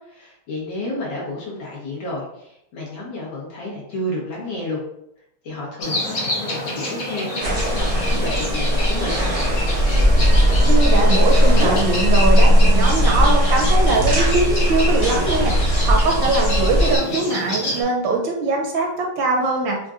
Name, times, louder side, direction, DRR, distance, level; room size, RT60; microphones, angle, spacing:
voice 1, 0.1-4.8 5.4-7.3 7.7-9.2, left 1 dB, 65° left, -5 dB, 2.0 m, -31 dB
sound 1, 5.8-17.8, left 1 dB, 50° left, 1.0 m, -28 dB
sound 2, 7.4-17.0, equal, 55° right, 0.8 m, -17 dB
voice 2, 10.7-15.5 15.8-19.8, right 3 dB, 75° right, 0 dB, 1.3 m, -21 dB
5.4 x 2.5 x 2.5 m, 0.78 s
omnidirectional pair, 2.3 m